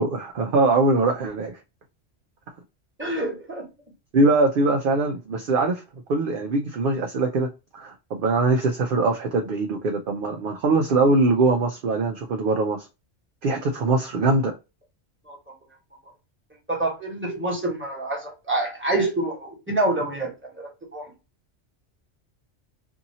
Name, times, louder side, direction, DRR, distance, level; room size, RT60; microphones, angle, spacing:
voice 1, 0.0-1.6 4.1-5.8 6.1-12.9 13.4-14.5, right 3 dB, 60° right, 0.6 m, -22 dB
voice 2, 3.0-3.7 15.3-15.4 16.7-21.1, right 2 dB, 10° right, 1.2 m, -27 dB
2.7 x 2.6 x 2.7 m
omnidirectional pair, 1.2 m